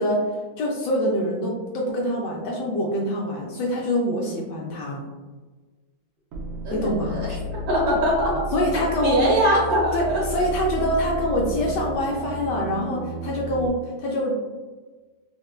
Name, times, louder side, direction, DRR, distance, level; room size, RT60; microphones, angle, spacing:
voice 1, 0.0-5.0 6.7-7.2 8.5-9.3 9.9-14.4, equal, 75° left, -2 dB, 1.1 m, -25 dB
sound 1, 6.3-13.7, right 2 dB, 85° right, 1.4 m, -33 dB
voice 2, 6.6-8.4 8.7-10.0 10.3-10.4, equal, 55° right, -5 dB, 1.3 m, -23 dB
4.2 x 2.2 x 2.3 m, 1.3 s
omnidirectional pair, 2.1 m